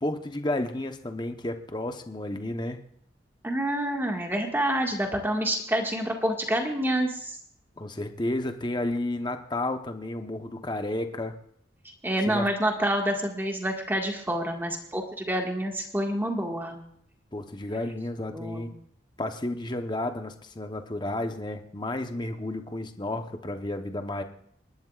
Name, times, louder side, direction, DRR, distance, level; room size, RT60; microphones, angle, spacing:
voice 1, 0.0-2.9 7.8-11.3 12.3-12.5 17.3-18.7 19.2-24.2, left 1 dB, 25° left, 7 dB, 0.9 m, -32 dB
voice 2, 3.4-7.4 12.0-16.8 18.3-18.7, right 1 dB, 10° right, 2 dB, 1.8 m, -28 dB
27.5 x 11.5 x 2.4 m, 0.67 s
head